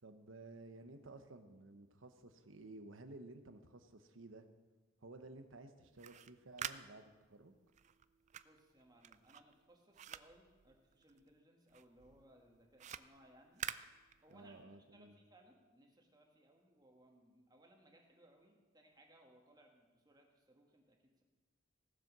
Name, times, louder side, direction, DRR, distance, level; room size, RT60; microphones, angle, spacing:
voice 1, 0.0-4.5 5.0-7.6 14.3-15.1, right 2 dB, 85° right, 8 dB, 1.0 m, -55 dB
sound 1, 5.8-11.4 11.7-14.6, right 9 dB, 35° right, 0.3 m, -49 dB
voice 2, 8.4-13.6 14.2-14.6 14.9-21.2, right 1 dB, 20° right, 1 dB, 1.8 m, -66 dB
17.0 x 7.6 x 6.1 m, 1.3 s
head